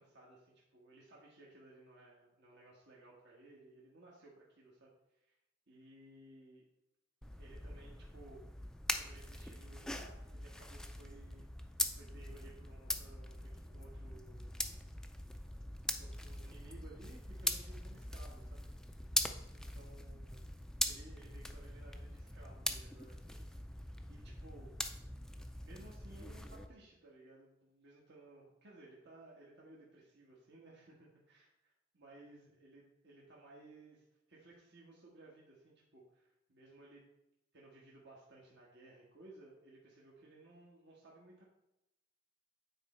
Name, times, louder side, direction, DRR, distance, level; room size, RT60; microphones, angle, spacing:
voice 1, 0.0-5.3 5.7-6.6 7.4-8.5 8.9-11.5 11.9-14.5 16.0-18.6 19.5-20.5 20.9-23.7 24.1-24.7 25.6-37.1 37.5-41.5, right 2 dB, 60° right, -4 dB, 1.6 m, -59 dB
sound 1, 7.2-26.7, left 1 dB, 5° left, 0.4 m, -42 dB
9.0 x 4.2 x 4.4 m, 0.89 s
head